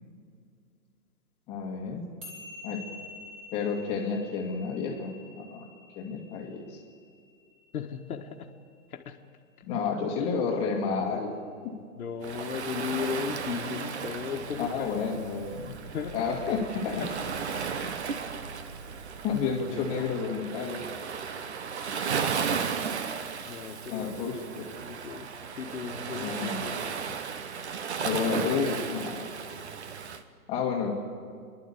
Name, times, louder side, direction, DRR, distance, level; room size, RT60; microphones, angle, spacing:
voice 1, 1.5-2.0 2.6-2.8 3.5-5.7 6.0-6.8 9.7-11.4 11.6-11.7 14.6-15.7 16.1-17.0 19.2-20.8 23.9-24.7 26.1-26.6 28.0-29.3 30.5-30.9, left 5 dB, 10° left, 0 dB, 1.8 m, -30 dB
sound 1, 2.2-8.8, left 3 dB, 15° right, 2.7 m, -48 dB
voice 2, 7.7-8.5 8.9-9.2 12.0-15.1 15.9-16.3 17.0-17.1 23.5-24.2 24.8-25.3 25.6-27.2, left 7 dB, 65° left, 2 dB, 1.6 m, -36 dB
Waves surf, 12.2-30.2, right 6 dB, 45° right, 1.2 m, -35 dB
sound 2, 14.4-19.6, right 4 dB, 65° right, 2.3 m, -48 dB
29.5 x 11.5 x 8.4 m, 2.2 s
hypercardioid pair, 170°, 46 cm